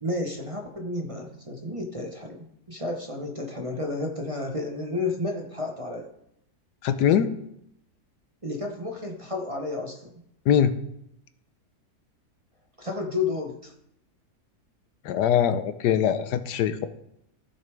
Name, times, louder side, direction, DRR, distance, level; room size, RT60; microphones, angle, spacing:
voice 1, 0.0-6.1 8.4-10.1 12.8-13.7, left 2 dB, 25° right, 1 dB, 0.9 m, -31 dB
voice 2, 6.8-7.3 10.5-10.7 15.0-16.9, left 9 dB, 90° left, 11 dB, 1.3 m, -22 dB
15.5 x 6.8 x 3.4 m, 0.77 s
omnidirectional pair, 1.8 m